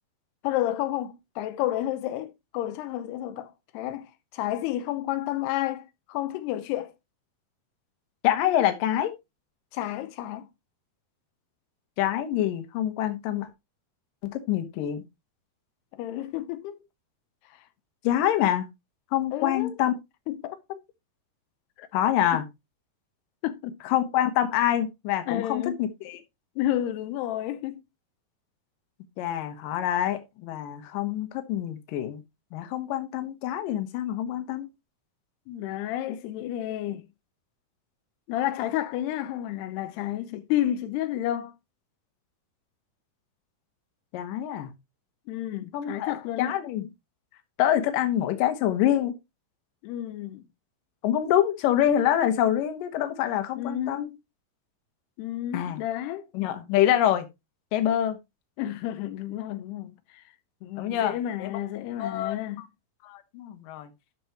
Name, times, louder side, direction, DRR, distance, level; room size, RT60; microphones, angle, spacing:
voice 1, 0.4-6.9 9.7-10.5 15.9-16.8 17.5-17.6 19.3-19.7 20.3-20.8 21.8-21.9 23.4-23.7 25.3-25.8 26.6-27.8 35.5-37.1 38.3-41.5 45.3-46.5 49.8-50.4 53.5-54.2 55.2-56.3 58.6-60.2 60.6-62.6, left 13 dB, 90° left, 2.8 m, -31 dB
voice 2, 8.2-9.1 12.0-13.5 14.2-15.0 18.0-18.7 19.1-19.9 21.9-22.4 23.9-26.2 29.2-32.2 32.5-34.7 44.1-44.7 45.7-46.1 46.4-46.9 47.6-49.2 51.0-54.1 55.5-55.8 56.3-57.3 57.7-58.2 60.8-61.2 61.4-61.5 62.0-62.7 63.0-63.9, left 11 dB, 70° left, 2.5 m, -26 dB
12.5 x 6.2 x 3.0 m
omnidirectional pair, 4.7 m